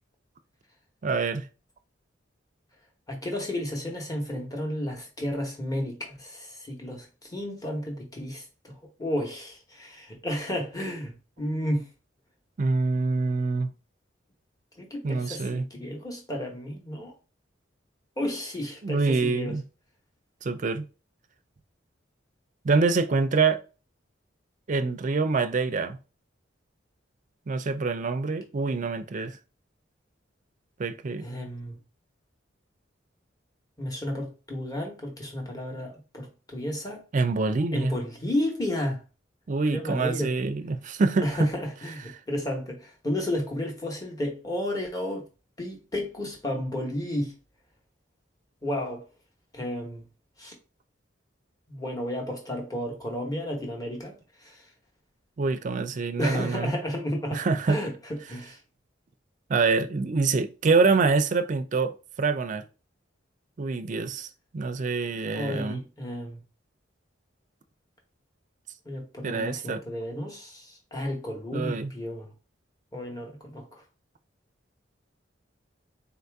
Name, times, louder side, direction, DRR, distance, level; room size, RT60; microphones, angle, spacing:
voice 1, 1.0-1.4 12.6-13.7 15.0-15.6 18.8-19.6 20.4-20.9 22.6-23.6 24.7-26.0 27.5-29.4 30.8-31.3 37.1-37.9 39.5-41.5 55.4-56.7 57.3-57.8 59.5-62.6 63.6-64.3 64.5-65.8 69.2-69.8 71.5-71.9, right 4 dB, 40° right, 0.4 m, -25 dB
voice 2, 3.1-8.7 9.0-11.9 14.8-17.1 18.2-19.5 31.2-31.8 33.8-37.0 37.7-39.0 39.7-40.3 41.2-45.2 45.6-47.3 48.6-49.0 49.5-50.0 50.4-50.5 51.7-54.1 54.4-54.6 56.2-57.9 58.3-58.6 65.2-66.4 68.8-72.3 72.9-73.7, left 1 dB, 20° left, 1.1 m, -32 dB
4.1 x 2.7 x 3.4 m
head